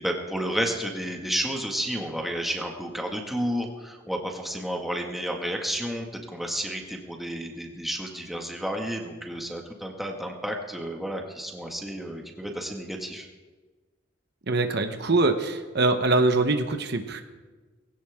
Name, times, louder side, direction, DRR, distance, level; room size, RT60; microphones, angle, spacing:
voice 1, 0.0-13.3, equal, ahead, 1 dB, 1.9 m, -31 dB
voice 2, 14.5-17.2, right 2 dB, 60° right, 7 dB, 1.1 m, -23 dB
20.0 x 17.0 x 3.7 m, 1.3 s
head